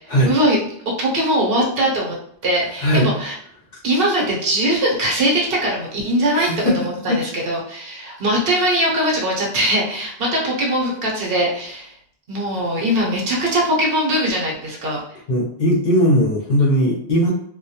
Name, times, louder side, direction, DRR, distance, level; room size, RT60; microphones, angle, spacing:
voice 1, 0.2-0.6 1.0-2.1 2.4-3.3 3.8-11.9 12.3-15.0, right 1 dB, 65° right, -3 dB, 0.9 m, -21 dB
voice 2, 2.8-3.2 6.3-6.7 7.1-7.2 15.3-17.3, equal, 50° left, -3 dB, 0.7 m, -18 dB
2.2 x 2.1 x 2.7 m, 0.66 s
omnidirectional pair, 1.1 m